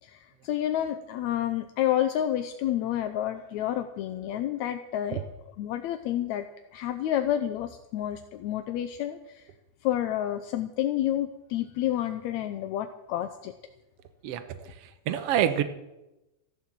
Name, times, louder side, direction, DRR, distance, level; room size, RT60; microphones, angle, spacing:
voice 1, 0.0-5.2 5.6-6.5 6.7-9.4 9.8-13.5, left 11 dB, 75° left, 6 dB, 1.9 m, -29 dB
voice 2, 14.2-15.6, right 10 dB, 60° right, 11 dB, 1.7 m, -28 dB
14.5 x 11.5 x 7.5 m, 0.96 s
omnidirectional pair, 3.7 m